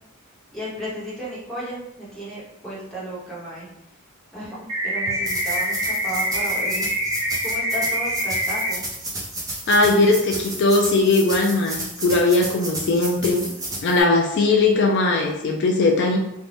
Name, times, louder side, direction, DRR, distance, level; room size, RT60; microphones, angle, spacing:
voice 1, 0.5-3.7 4.3-6.9 7.4-8.8, equal, ahead, -9 dB, 0.9 m, -34 dB
sound 1, 4.7-8.7, equal, 65° right, 0.8 m, -25 dB
sound 2, 5.2-14.0, right 1 dB, 15° right, 0.5 m, -32 dB
voice 2, 9.7-13.4 13.8-16.2, left 2 dB, 50° left, 0 dB, 0.3 m, -19 dB
2.5 x 2.1 x 3.2 m, 0.85 s
head